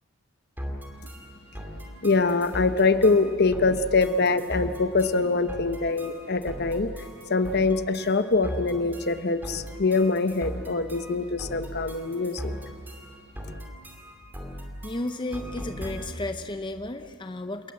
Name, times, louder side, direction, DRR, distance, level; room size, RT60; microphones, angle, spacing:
sound 1, 0.6-16.3, equal, 10° right, 2.5 m, -39 dB
voice 1, 2.0-6.9 7.3-12.5, left 3 dB, 50° left, 11 dB, 0.9 m, -24 dB
voice 2, 14.8-17.7, left 2 dB, 20° left, 8 dB, 0.7 m, -33 dB
27.5 x 19.0 x 7.5 m, 2.2 s
head